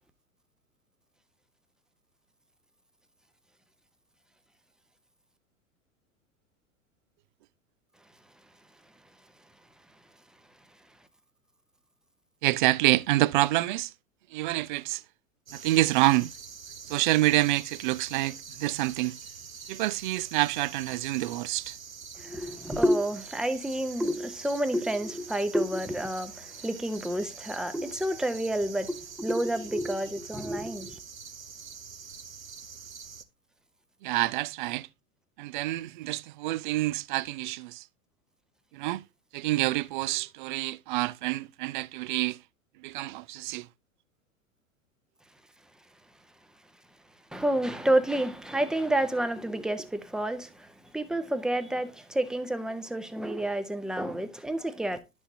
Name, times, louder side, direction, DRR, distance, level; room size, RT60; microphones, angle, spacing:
voice 1, 12.4-13.9 14.3-15.0 15.5-16.3 16.9-19.2 19.7-21.7 34.0-34.9 35.4-37.8 38.7-39.0 39.3-42.4 42.8-43.6, right 18 dB, 40° right, 0.4 m, -27 dB
sound 1, 15.5-33.2, right 6 dB, 85° right, 0.9 m, -45 dB
voice 2, 22.2-31.0 47.3-55.0, right 1 dB, ahead, 0.7 m, -29 dB
11.0 x 6.2 x 2.8 m
figure-of-eight pair, 90°, 40 cm